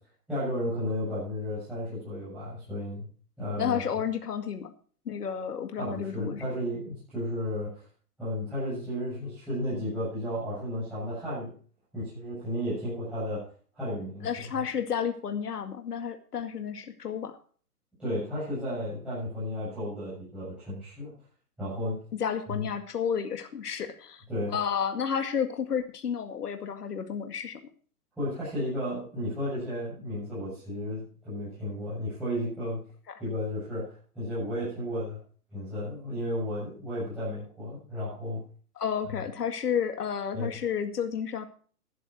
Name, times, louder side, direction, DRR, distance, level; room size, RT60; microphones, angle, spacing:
voice 1, 0.3-3.1 3.4-3.8 5.8-7.8 8.2-11.5 11.9-13.4 13.7-14.6 18.0-21.1 21.6-22.0 22.5-22.7 24.3-24.6 28.2-32.8 33.2-35.2 35.5-38.4 39.1-39.2 40.3-40.5, equal, ahead, -13 dB, 7.5 m, -33 dB
voice 2, 3.6-4.7 5.1-6.4 14.2-17.4 22.2-24.2 24.5-27.6 38.8-41.4, left 7 dB, 80° left, 7 dB, 2.2 m, -31 dB
12.5 x 11.0 x 4.6 m, 0.42 s
hypercardioid pair, 170°, 46 cm